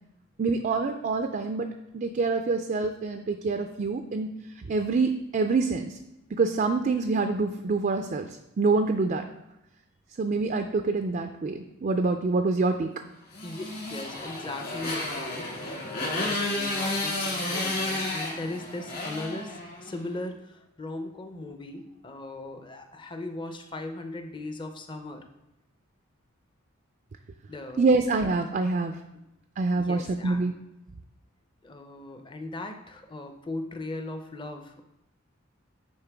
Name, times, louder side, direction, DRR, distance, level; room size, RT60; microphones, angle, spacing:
voice 1, 0.4-6.0 6.3-9.2 10.2-12.9 27.8-29.0 29.6-30.5, right 3 dB, 40° right, 6 dB, 0.3 m, -26 dB
Motorcycle, 13.3-20.0, left 2 dB, 50° left, 2.3 m, -32 dB
voice 2, 13.9-25.3 27.5-27.9 29.7-30.5 31.6-34.8, left 2 dB, 25° left, 5 dB, 0.6 m, -38 dB
9.5 x 3.8 x 3.4 m, 0.94 s
head